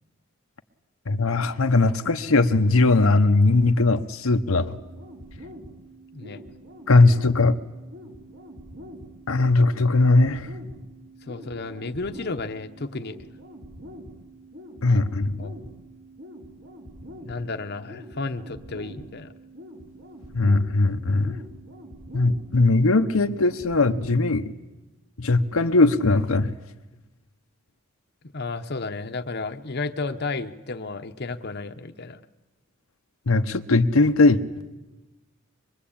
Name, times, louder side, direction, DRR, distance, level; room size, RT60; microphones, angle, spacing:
voice 1, 1.1-4.7 6.9-7.6 9.3-10.5 14.8-15.4 20.3-21.4 22.1-24.5 25.2-26.5 33.3-34.4, left 3 dB, 90° left, 6 dB, 1.0 m, -19 dB
sound 1, 4.5-24.5, equal, 60° right, 5.2 m, -44 dB
voice 2, 11.3-13.2 14.8-15.0 15.4-15.5 17.2-19.3 28.3-32.2, left 3 dB, 50° left, 7 dB, 0.9 m, -32 dB
24.5 x 22.0 x 8.7 m, 1.1 s
head